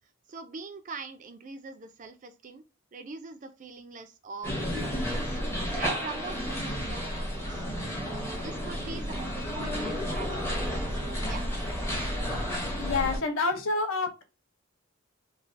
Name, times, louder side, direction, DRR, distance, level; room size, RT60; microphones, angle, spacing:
voice 1, 0.3-2.6 2.9-5.4 5.8-7.7 8.1-10.4 10.9-11.5, right 4 dB, 35° right, 8 dB, 0.3 m, -43 dB
sound 1, 4.4-13.2, equal, 10° left, 0.6 m, -32 dB
voice 2, 12.8-14.2, left 3 dB, 65° left, 6 dB, 0.6 m, -28 dB
3.2 x 2.3 x 2.4 m, 0.30 s
head